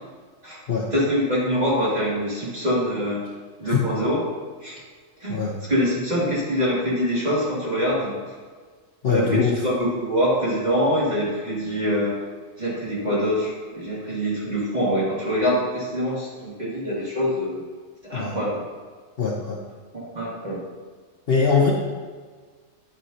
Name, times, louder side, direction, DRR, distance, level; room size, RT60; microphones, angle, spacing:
voice 1, 0.9-3.3 3.6-4.2 4.6-4.8 5.2-8.1 9.1-12.2 12.6-17.6 18.0-18.6 19.9-20.6, equal, 30° right, -7 dB, 2.7 m, -24 dB
voice 2, 9.0-9.5 18.1-18.4 19.2-19.6 21.3-21.7, left 5 dB, 50° left, -2 dB, 1.0 m, -21 dB
10.0 x 7.9 x 2.9 m, 1.5 s
omnidirectional pair, 1.4 m